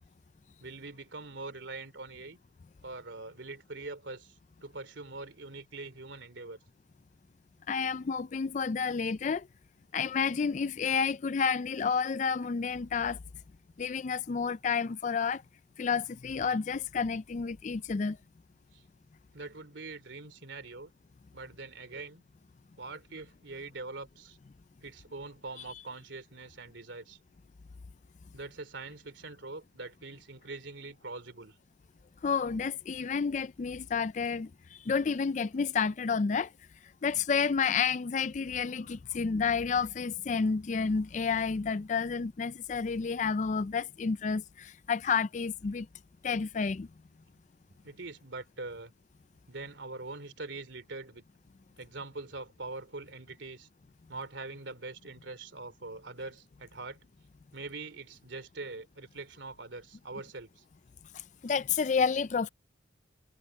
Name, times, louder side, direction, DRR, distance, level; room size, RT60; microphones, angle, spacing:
voice 1, 0.6-2.4 2.8-6.6 18.7-18.8 19.3-20.9 21.3-22.2 22.8-24.4 24.8-27.2 28.3-31.6 47.8-48.9 49.5-51.2 51.8-53.7 54.1-57.0 57.5-60.6, right 3 dB, 85° right, 2.9 m, -43 dB
voice 2, 7.7-9.5 9.9-13.2 13.8-15.4 15.8-18.2 32.2-34.5 34.9-36.5 37.0-45.9 46.2-46.9 61.4-62.5, left 5 dB, 40° left, 0.4 m, -30 dB
head